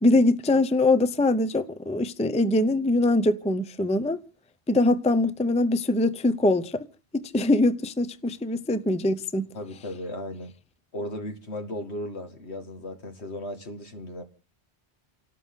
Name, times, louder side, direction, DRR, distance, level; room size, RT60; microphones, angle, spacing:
voice 1, 0.0-4.2 4.7-6.9 7.1-9.4, left 2 dB, 10° left, 0.5 m, -23 dB
voice 2, 9.5-10.5 10.9-14.2, left 1 dB, 70° left, 2.3 m, -36 dB
29.5 x 12.5 x 3.7 m
omnidirectional pair, 1.2 m